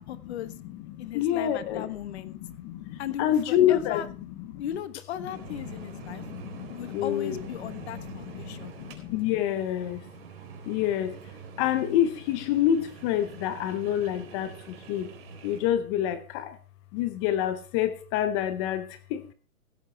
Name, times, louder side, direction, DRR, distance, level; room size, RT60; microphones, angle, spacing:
voice 1, 0.0-0.5 1.0-2.3 3.0-4.1 4.5-6.2 6.7-8.8, left 10 dB, 45° left, 14 dB, 1.3 m, -37 dB
voice 2, 0.6-1.9 2.2-4.0 4.4-4.6 5.6-10.0 10.7-15.1 15.4-16.6 16.9-19.3, left 11 dB, 20° left, 12 dB, 0.7 m, -28 dB
sound 1, 5.3-15.6, right 6 dB, 45° right, 4.0 m, -45 dB
16.5 x 8.3 x 4.5 m, 0.36 s
hypercardioid pair, 140°, 43 cm